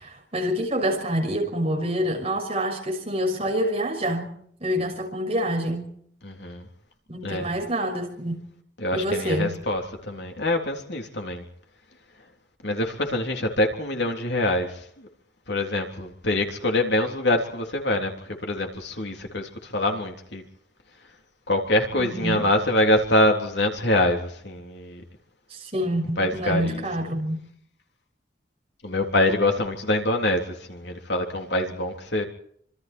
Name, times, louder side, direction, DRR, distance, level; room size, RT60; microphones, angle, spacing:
voice 1, 0.0-5.9 7.1-8.4 8.9-9.6 21.9-22.5 25.5-27.4, equal, 35° right, 2 dB, 6.0 m, -27 dB
voice 2, 6.2-6.7 7.2-7.5 8.8-11.4 12.6-15.1 15.5-18.1 18.4-20.4 21.5-25.0 26.2-26.8 28.8-32.2, left 1 dB, 65° left, 3 dB, 3.6 m, -25 dB
26.5 x 26.5 x 4.5 m, 0.65 s
head